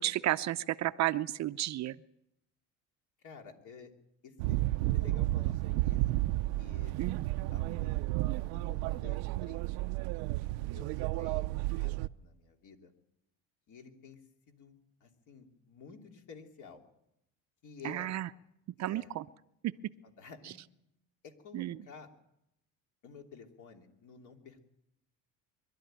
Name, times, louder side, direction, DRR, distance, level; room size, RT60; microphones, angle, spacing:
voice 1, 0.0-2.0 7.0-7.3 17.8-18.3 18.8-19.3 19.6-19.7 21.5-21.8, right 14 dB, 45° right, 13 dB, 0.6 m, -32 dB
voice 2, 3.2-3.9 4.2-6.0 6.6-6.9 7.5-8.0 8.5-10.1 10.7-11.9 12.2-12.9 13.7-14.2 14.5-16.8 17.6-18.1 18.8-19.1 20.0-20.6 21.2-22.1 23.0-24.6, left 5 dB, 55° left, 3 dB, 3.1 m, -52 dB
sound 1, 4.4-12.1, right 18 dB, 85° right, 0.6 m, -32 dB
23.5 x 12.5 x 9.0 m, 0.82 s
cardioid pair, 115°, 37 cm